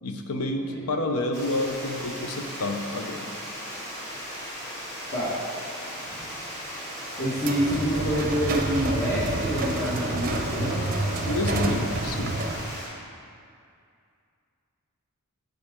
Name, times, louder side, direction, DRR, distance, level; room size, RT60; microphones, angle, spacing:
voice 1, 0.0-3.3 11.3-12.4, left 2 dB, 80° left, 4 dB, 0.8 m, -29 dB
Water, 1.3-12.9, equal, 15° left, 1.7 m, -37 dB
voice 2, 7.2-11.0, equal, 40° left, -10 dB, 1.4 m, -27 dB
sound 1, 7.4-12.8, right 2 dB, 40° right, 0.6 m, -29 dB
9.5 x 7.6 x 3.6 m, 2.4 s
head